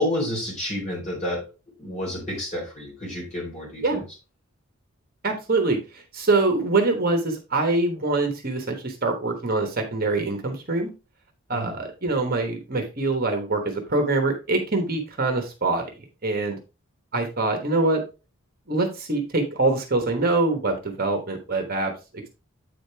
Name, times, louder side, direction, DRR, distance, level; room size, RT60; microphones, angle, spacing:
voice 1, 0.0-1.4 1.8-4.0 11.5-11.8, left 1 dB, 30° left, -4 dB, 4.2 m, -29 dB
voice 2, 5.2-10.9 11.5-15.9 16.2-16.6 17.1-18.0 18.7-21.9, right 3 dB, 45° right, 5 dB, 1.1 m, -24 dB
8.3 x 5.1 x 3.4 m, 0.29 s
head